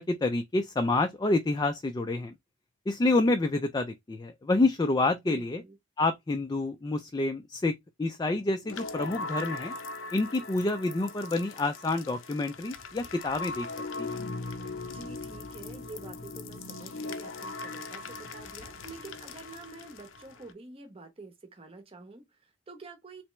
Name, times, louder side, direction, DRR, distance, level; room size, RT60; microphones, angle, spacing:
voice 1, 0.0-2.3 2.9-5.6 6.0-9.7 10.1-13.7 14.0-14.2, left 2 dB, 20° left, 0.3 m, -28 dB
voice 2, 5.2-5.8 14.8-23.2, right 3 dB, 30° right, 0.8 m, -47 dB
sound 1, 8.6-20.5, left 3 dB, 85° left, 0.6 m, -40 dB
3.3 x 3.0 x 3.1 m
head